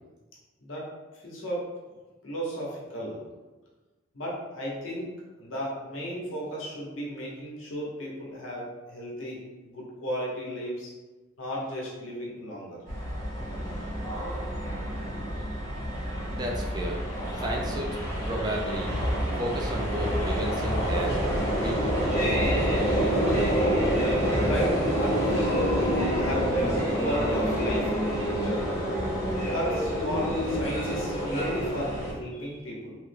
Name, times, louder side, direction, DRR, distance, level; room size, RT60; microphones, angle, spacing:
voice 1, 1.1-1.6 2.2-3.3 4.1-5.1 5.4-10.9 11.4-12.8 24.4-28.8 29.4-33.0, equal, 90° left, -4 dB, 0.9 m, -34 dB
sound 1, 12.9-32.1, equal, 15° left, 0.8 m, -27 dB
voice 2, 16.3-17.0 17.3-18.0 18.3-18.9 19.4-21.2 21.6-22.7, right 1 dB, 20° right, 0 dB, 0.4 m, -33 dB
3.2 x 2.1 x 3.3 m, 1.2 s
head